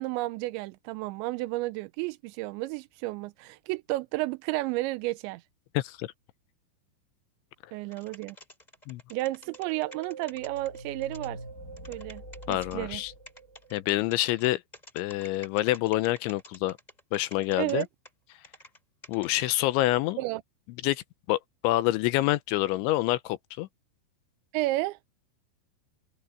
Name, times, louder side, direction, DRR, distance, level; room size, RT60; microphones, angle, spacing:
voice 1, 0.0-5.4 7.7-8.4 9.1-11.4 11.9-12.2 12.5-13.0 17.6-17.9 20.2-20.4 24.5-25.0, right 19 dB, 85° right, 2.6 m, -32 dB
voice 2, 5.7-6.1 8.9-9.0 12.5-13.1 13.7-14.6 15.0-16.8 17.1-17.9 19.1-20.2 20.8-21.0 21.3-23.7, left 16 dB, 80° left, 2.9 m, -27 dB
sound 1, 7.9-11.3 11.8-12.8 13.3-18.8 19.0-19.4, equal, 10° left, 5.1 m, -49 dB
sound 2, 9.4-14.0, right 2 dB, 25° left, 1.9 m, -45 dB
open air
omnidirectional pair, 5.8 m